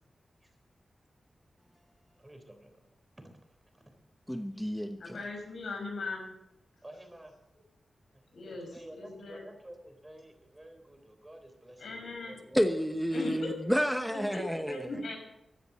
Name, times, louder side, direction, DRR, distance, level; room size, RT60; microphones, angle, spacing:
voice 1, 2.2-2.8 3.2-3.4 6.8-7.3 8.1-12.6, right 1 dB, 15° right, 3.7 m, -51 dB
voice 2, 4.3-5.2 12.5-14.8, equal, ahead, 1.0 m, -30 dB
voice 3, 5.0-6.3 8.3-9.4 11.8-12.4 13.1-13.5 14.1-15.3, left 2 dB, 90° left, 6.2 m, -39 dB
15.5 x 10.5 x 8.0 m
wide cardioid pair, 90°, 0 cm